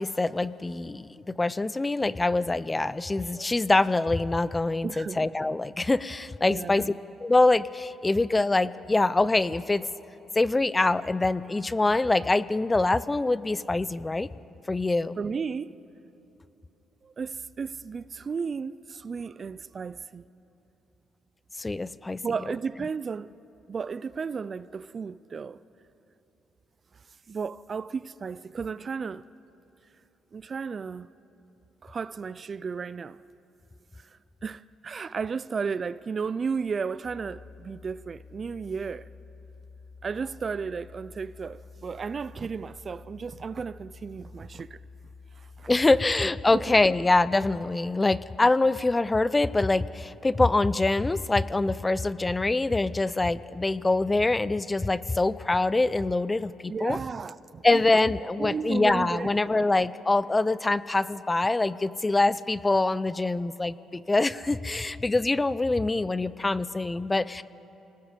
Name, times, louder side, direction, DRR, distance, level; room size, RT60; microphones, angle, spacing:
voice 1, 0.0-6.9 7.2-9.9 10.4-14.3 14.7-15.2 21.6-22.2 45.7-57.0 57.6-67.4, left 2 dB, 20° left, 0.5 m, -24 dB
voice 2, 4.8-5.2 6.5-6.9 15.2-15.8 17.0-20.2 22.2-23.3 23.7-25.6 27.3-29.3 30.3-31.1 31.8-33.2 34.0-39.1 40.0-44.8 45.4-45.7 46.5-46.8 56.7-57.8 58.4-59.4, right 5 dB, 40° right, 0.4 m, -34 dB
sound 1, 37.0-47.6, left 4 dB, 45° left, 6.3 m, -49 dB
26.0 x 19.0 x 5.2 m
cardioid pair, 90°, 0 cm